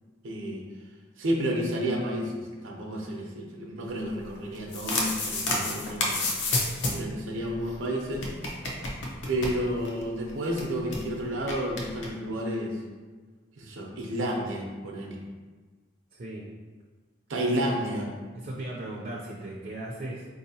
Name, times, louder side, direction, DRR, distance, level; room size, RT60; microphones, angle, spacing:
voice 1, 0.2-0.6 1.2-6.2 6.9-8.3 9.3-12.8 13.6-15.2 17.3-18.1, equal, 90° right, -1 dB, 0.6 m, -31 dB
sound 1, 4.5-7.1 7.4-7.5 7.7-7.8 8.1-10.0 10.3-10.4 10.6-11.0 11.5-12.1, left 2 dB, 70° left, 0.6 m, -30 dB
voice 2, 16.1-16.5 18.3-20.3, right 1 dB, 45° right, -3 dB, 0.4 m, -37 dB
4.3 x 2.7 x 2.7 m, 1.4 s
head